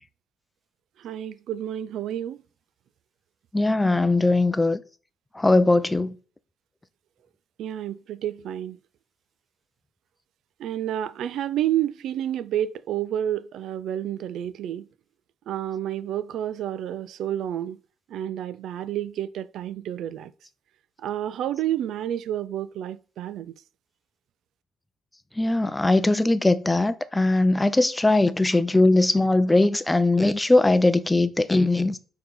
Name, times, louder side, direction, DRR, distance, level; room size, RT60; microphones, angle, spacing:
voice 1, 1.0-2.4 7.6-8.8 10.6-14.9 15.5-17.8 18.1-20.3 21.0-23.5, right 11 dB, 75° right, 0.3 m, -30 dB
voice 2, 3.5-4.8 5.4-6.1 25.4-32.0, left 2 dB, 15° left, 0.5 m, -20 dB
4.6 x 3.9 x 5.4 m
cardioid pair, 90°, 0 cm